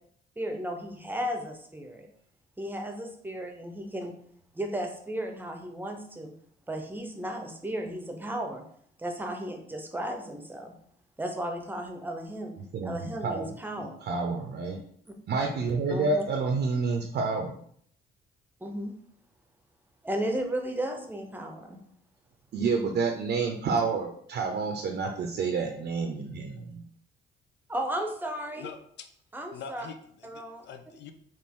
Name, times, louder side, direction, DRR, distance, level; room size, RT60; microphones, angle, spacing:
voice 1, 0.4-2.1 2.6-4.1 4.5-6.3 6.7-8.6 9.0-10.7 11.2-12.5 12.8-13.9 15.9-16.2 18.6-18.9 20.0-21.8 27.7-28.7 29.3-29.9 30.2-30.6, right 1 dB, 10° right, 3 dB, 0.7 m, -34 dB
voice 2, 12.7-13.5 14.0-14.8 15.3-17.6 22.5-26.8, right 4 dB, 60° right, 3 dB, 0.6 m, -29 dB
voice 3, 28.6-29.1 29.5-31.1, left 6 dB, 65° left, 7 dB, 0.5 m, -44 dB
4.2 x 2.5 x 3.6 m, 0.63 s
cardioid pair, 90°, 20 cm